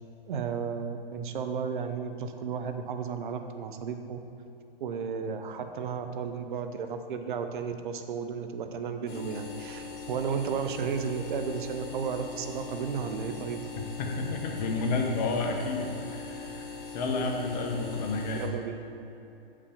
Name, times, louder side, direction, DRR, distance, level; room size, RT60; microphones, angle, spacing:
voice 1, 0.3-4.2 4.8-13.6 18.3-18.8, right 6 dB, 55° right, 7 dB, 0.7 m, -33 dB
sound 1, 9.1-18.5, left 4 dB, 60° left, 1.7 m, -41 dB
voice 2, 14.0-16.7 16.9-18.5, left 3 dB, 45° left, 2 dB, 1.0 m, -30 dB
6.9 x 5.3 x 5.0 m, 2.9 s
hypercardioid pair, 130°, 30 cm